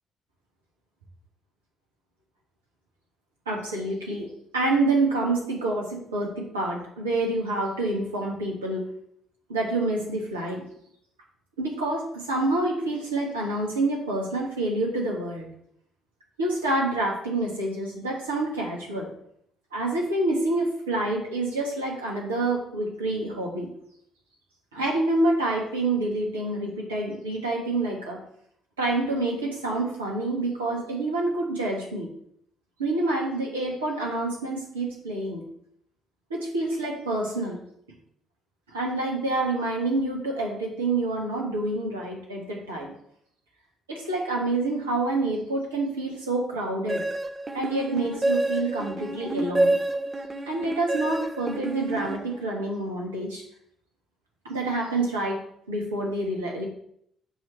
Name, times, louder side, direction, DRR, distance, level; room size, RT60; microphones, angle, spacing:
voice 1, 3.5-8.9 9.5-10.6 11.6-15.5 16.4-19.1 19.7-23.7 24.7-28.2 28.8-32.1 32.8-35.4 36.3-37.6 38.7-42.9 43.9-47.0 47.5-49.7 50.5-53.4 54.4-55.4 55.7-56.6, right 2 dB, 85° right, -2 dB, 1.3 m, -27 dB
sound 1, 46.9-52.7, right 2 dB, 30° right, 0.8 m, -28 dB
7.0 x 3.1 x 5.9 m, 0.70 s
figure-of-eight pair, 45°, 0 cm